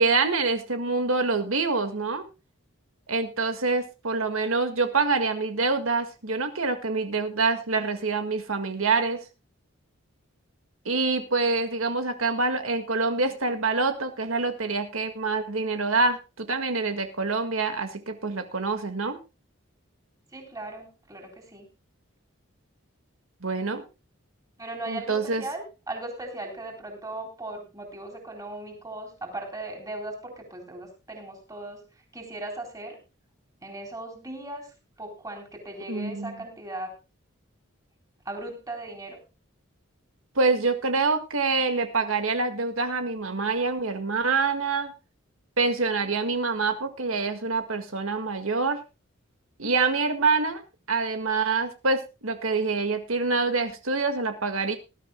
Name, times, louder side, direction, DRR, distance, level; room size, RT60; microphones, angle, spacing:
voice 1, 0.0-2.2 3.1-9.2 10.9-19.2 23.4-23.8 24.9-25.4 35.9-36.3 40.4-44.9 45.6-48.8 49.6-50.6 50.9-54.8, right 4 dB, 85° right, 7 dB, 1.8 m, -26 dB
voice 2, 20.3-21.7 24.6-31.9 32.1-33.0 33.6-37.0 38.3-39.2, right 2 dB, 15° right, 3 dB, 4.0 m, -38 dB
20.0 x 12.5 x 2.2 m, 0.28 s
head